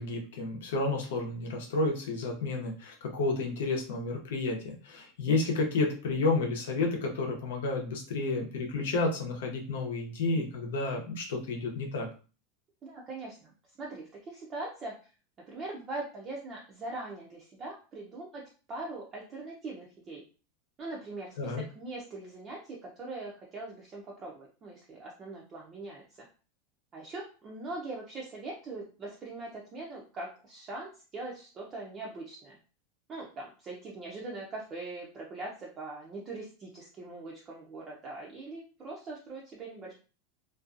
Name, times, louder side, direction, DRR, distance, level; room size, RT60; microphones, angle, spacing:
voice 1, 0.0-12.1 21.4-21.6, left 3 dB, 85° left, 1 dB, 0.8 m, -31 dB
voice 2, 12.8-13.5 13.8-15.0 15.5-18.4 18.7-20.2 20.8-26.3 26.9-32.6 33.1-39.9, right 2 dB, 25° right, -3 dB, 0.5 m, -41 dB
2.5 x 2.2 x 2.5 m, 0.36 s
supercardioid pair, 160°, 0 cm